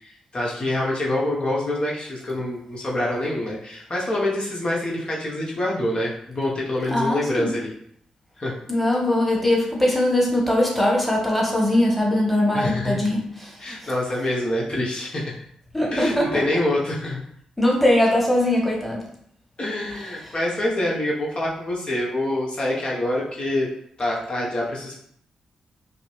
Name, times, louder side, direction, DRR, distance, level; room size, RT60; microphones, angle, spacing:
voice 1, 0.0-7.7 8.4-8.6 12.5-13.0 13.6-15.4 15.9-17.2 19.6-23.7 24.0-24.9, left 1 dB, 45° left, -4 dB, 1.1 m, -26 dB
voice 2, 6.9-7.5 8.7-13.5 15.7-16.4 17.6-19.0, left 1 dB, 5° left, -2 dB, 1.4 m, -21 dB
4.9 x 2.0 x 3.3 m, 0.68 s
supercardioid pair, 40°, 2 cm